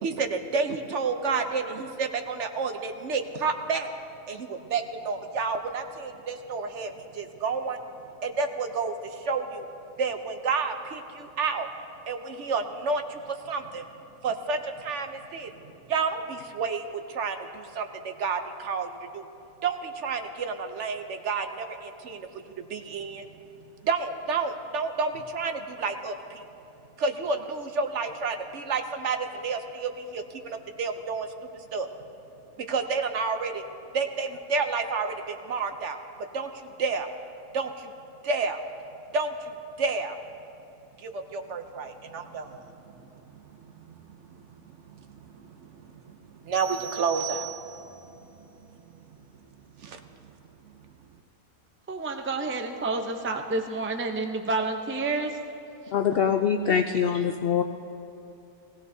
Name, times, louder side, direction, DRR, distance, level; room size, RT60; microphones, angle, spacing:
voice 1, 0.0-3.9 4.3-7.8 8.2-9.7 10.0-11.7 12.1-13.9 14.2-15.5 15.9-19.2 19.6-23.2 23.8-26.4 27.0-31.3 31.5-31.9 32.6-33.6 33.9-36.0 36.3-37.1 37.5-37.9 38.2-38.6 39.1-40.2 41.0-43.2 43.8-44.4 44.7-47.5 48.4-48.5 49.8-50.0, right 4 dB, 60° right, 6 dB, 0.9 m, -30 dB
sound 1, 46.5-48.0, right 15 dB, 45° right, 2.6 m, -38 dB
voice 2, 51.9-55.3, right 3 dB, 15° right, 4 dB, 0.4 m, -29 dB
voice 3, 55.9-57.6, left 7 dB, 70° left, 5 dB, 0.5 m, -24 dB
19.0 x 16.5 x 2.7 m, 2.9 s
omnidirectional pair, 1.5 m